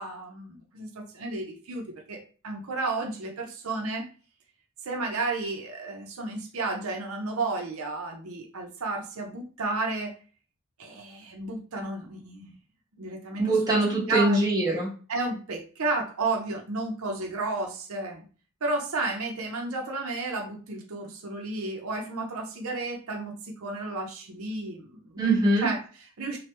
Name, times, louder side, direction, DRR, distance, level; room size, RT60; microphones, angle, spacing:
voice 1, 0.0-4.1 4.8-10.1 10.8-12.6 13.0-13.6 14.0-14.5 15.1-18.2 18.6-25.3 25.6-26.4, right 2 dB, 85° right, 2 dB, 0.6 m, -32 dB
voice 2, 13.4-14.9 25.2-25.7, right 2 dB, 20° right, -6 dB, 1.3 m, -23 dB
2.9 x 2.2 x 3.3 m, 0.37 s
head